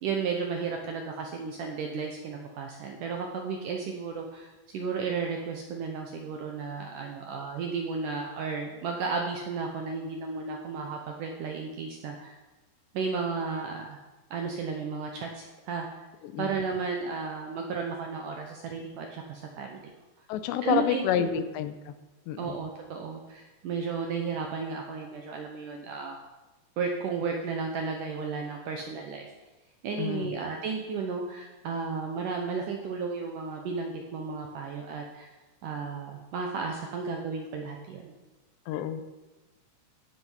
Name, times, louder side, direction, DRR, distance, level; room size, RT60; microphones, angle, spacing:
voice 1, 0.0-12.3 12.9-14.0 14.3-15.9 16.4-19.8 20.6-21.4 22.4-26.2 26.8-29.3 29.8-35.3 35.6-38.1, right 5 dB, 75° right, 2 dB, 2.0 m, -33 dB
voice 2, 20.3-21.9 22.3-22.5 30.0-30.3 38.7-39.0, left 10 dB, 90° left, 11 dB, 2.9 m, -29 dB
15.5 x 7.6 x 5.6 m, 1.1 s
omnidirectional pair, 5.0 m